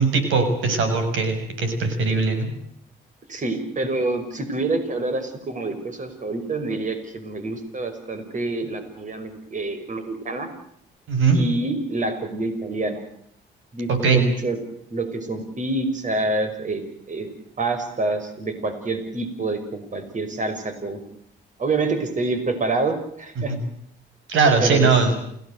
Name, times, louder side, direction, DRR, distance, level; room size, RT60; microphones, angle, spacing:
voice 1, 0.0-2.5 11.1-11.4 13.9-14.2 23.4-23.6 24.3-25.1, right 4 dB, 80° right, 8 dB, 6.8 m, -20 dB
voice 2, 3.3-10.5 11.3-13.0 13.7-14.6 14.9-17.3 17.6-21.0 21.6-23.6 24.6-24.9, right 2 dB, 40° right, 8 dB, 5.6 m, -27 dB
29.5 x 18.0 x 8.1 m, 0.70 s
cardioid pair, 90°, 20 cm